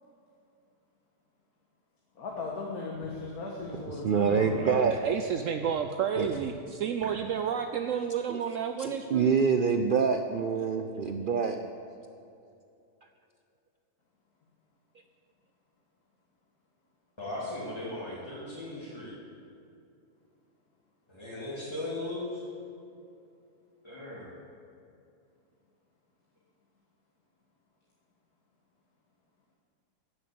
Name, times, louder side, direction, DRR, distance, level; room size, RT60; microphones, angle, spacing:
voice 1, 2.2-4.7, left 3 dB, 70° left, -2 dB, 1.8 m, -37 dB
Walk footsteps, 2.3-2.4 2.9-3.1 3.6-3.7 4.3-4.4 4.9-5.2 5.6-5.8 6.2-6.5 7.0-7.2, equal, 50° left, 3.8 m, -49 dB
voice 2, 4.0-5.0 6.2-6.3 8.3-8.4 8.8-11.6, right 6 dB, 85° right, 6 dB, 0.4 m, -26 dB
voice 3, 4.6-9.3, right 8 dB, 65° right, 7 dB, 0.9 m, -31 dB
voice 4, 17.2-19.1 21.1-22.4 23.8-24.3, left 2 dB, 15° left, -9 dB, 2.5 m, -37 dB
14.5 x 6.2 x 8.5 m, 2.6 s
omnidirectional pair, 1.6 m